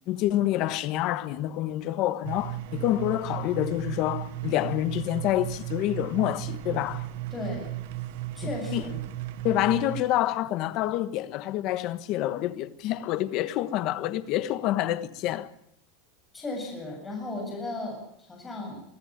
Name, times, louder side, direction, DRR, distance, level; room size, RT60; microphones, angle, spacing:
voice 1, 0.1-7.1 8.4-8.9 9.4-15.5, left 13 dB, 40° left, 1.3 m, -27 dB
sound 1, 2.2-10.0, right 15 dB, 60° right, 1.1 m, -35 dB
voice 2, 7.3-7.7 8.3-9.1 16.3-18.8, left 2 dB, 10° left, 7.7 m, -35 dB
24.5 x 13.5 x 9.0 m
supercardioid pair, 165°, 0 cm